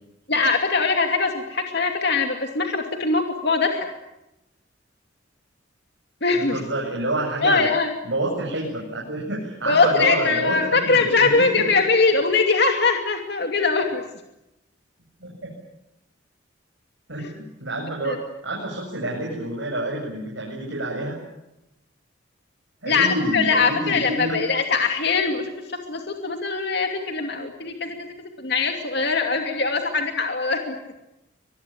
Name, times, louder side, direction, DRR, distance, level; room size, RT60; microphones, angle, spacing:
voice 1, 0.3-3.9 6.2-6.6 7.4-7.9 9.7-14.0 17.2-17.3 18.0-18.2 22.9-25.5 25.9-28.1 28.4-30.7, left 4 dB, 60° left, 4 dB, 2.7 m, -22 dB
voice 2, 6.3-7.7 8.0-11.9 15.2-15.5 17.1-21.2 22.8-24.4, right 1 dB, 75° right, -2 dB, 7.9 m, -28 dB
24.5 x 21.5 x 9.0 m, 0.89 s
head